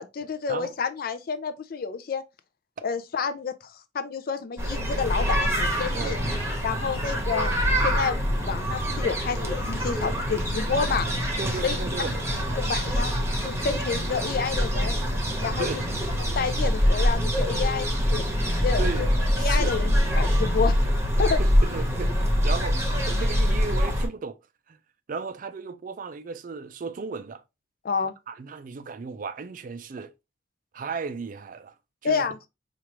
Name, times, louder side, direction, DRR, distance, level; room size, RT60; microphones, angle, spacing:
voice 1, 0.0-2.2 2.8-6.2 6.6-11.1 11.6-12.0 12.4-15.0 15.4-15.8 16.2-18.2 18.6-19.1 19.4-20.8 21.0-21.4 27.8-28.1 32.0-32.4, left 5 dB, 55° left, 0.4 m, -29 dB
sound 1, 4.6-24.1, equal, 15° right, 0.9 m, -25 dB
voice 2, 11.4-12.1 15.6-15.8 18.8-19.1 19.4-19.8 21.4-24.4 24.7-24.8 25.1-27.4 28.3-30.1 30.7-31.7 32.0-32.3, right 4 dB, 45° right, 0.4 m, -35 dB
4.5 x 2.5 x 2.9 m
head